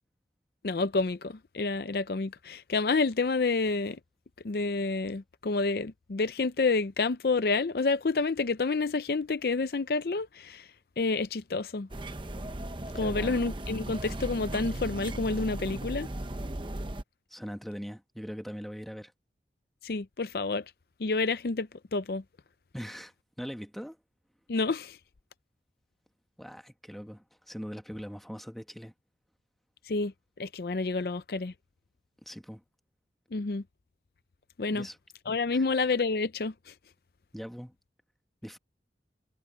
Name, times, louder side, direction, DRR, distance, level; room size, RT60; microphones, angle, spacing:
voice 1, 0.6-4.0 4.4-10.7 11.0-11.9 12.9-16.1 19.8-20.6 21.0-22.2 24.5-25.0 29.9-30.1 30.4-31.5 33.3-33.6 34.6-34.9 35.3-36.7, left 3 dB, 60° left, 0.5 m, -29 dB
sound 1, 11.9-17.0, right 1 dB, 30° right, 0.9 m, -36 dB
voice 2, 13.0-13.4 17.3-19.1 22.7-24.0 26.4-28.9 32.2-32.6 34.7-35.0 35.5-35.6 37.3-37.7 38.4-38.6, equal, ahead, 1.5 m, -41 dB
head